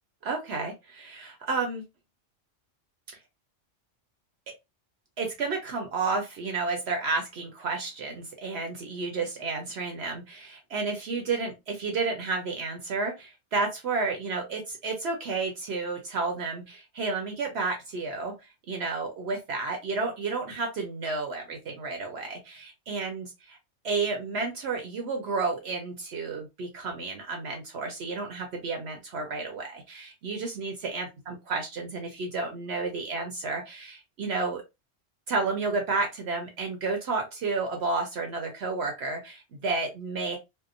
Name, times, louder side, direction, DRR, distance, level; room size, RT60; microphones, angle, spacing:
voice 1, 0.2-1.8 5.2-23.6 23.8-34.6 35.3-40.4, right 3 dB, 65° right, 3 dB, 0.8 m, -31 dB
2.7 x 2.1 x 2.5 m, 0.23 s
omnidirectional pair, 1.3 m